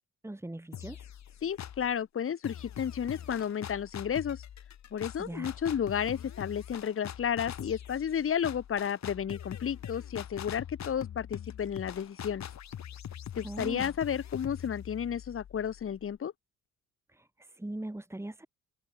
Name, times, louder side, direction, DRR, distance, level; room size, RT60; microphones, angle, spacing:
voice 1, 0.2-1.1 5.2-5.6 13.4-13.9 17.1-18.5, right 1 dB, 10° right, 3.7 m, -40 dB
sound 1, 0.7-1.9 2.4-16.1, left 10 dB, 65° left, 6.5 m, -43 dB
voice 2, 1.4-4.4 4.9-12.5 13.3-16.3, left 8 dB, 45° left, 1.6 m, -32 dB
cardioid pair, 90°, 30 cm